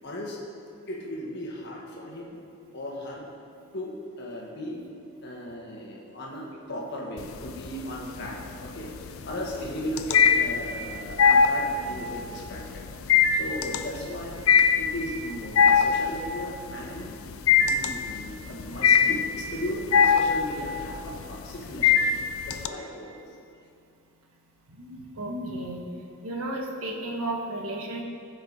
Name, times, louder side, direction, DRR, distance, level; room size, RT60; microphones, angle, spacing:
voice 1, 0.0-0.4 0.9-2.4 2.7-3.3 3.7-4.8 5.2-12.8 13.3-14.4 14.8-17.1 17.6-23.1, equal, 50° left, -2 dB, 1.5 m, -36 dB
sound 1, 7.2-7.8 8.2-22.7, left 6 dB, 70° left, 0.5 m, -21 dB
voice 2, 24.7-25.8 26.2-28.0, right 1 dB, 85° right, 0 dB, 1.2 m, -33 dB
15.0 x 5.3 x 4.1 m, 2.6 s
head